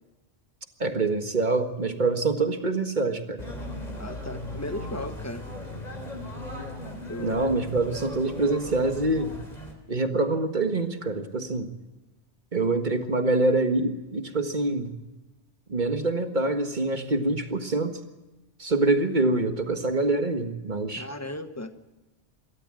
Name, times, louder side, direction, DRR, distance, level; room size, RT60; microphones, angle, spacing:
voice 1, 0.8-3.4 7.2-9.4 9.9-11.7 12.5-14.9 15.7-18.0 18.6-21.1, right 2 dB, 40° right, 6 dB, 1.7 m, -25 dB
sound 1, 3.4-9.7, left 1 dB, 35° left, 3.7 m, -37 dB
voice 2, 4.0-5.5 7.1-7.4 20.9-21.7, left 1 dB, 15° left, 8 dB, 1.2 m, -36 dB
26.0 x 13.5 x 7.6 m, 1.1 s
omnidirectional pair, 1.2 m